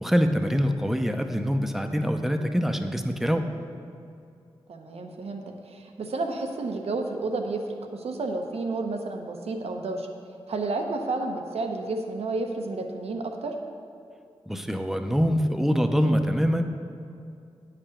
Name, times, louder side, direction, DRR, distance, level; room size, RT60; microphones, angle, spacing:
voice 1, 0.0-3.5 14.5-16.6, equal, 5° right, 6 dB, 0.7 m, -24 dB
voice 2, 4.7-7.6 7.9-10.1 10.5-13.5, right 3 dB, 75° right, 3 dB, 0.8 m, -31 dB
8.7 x 5.1 x 5.8 m, 2.4 s
cardioid pair, 40°, 11 cm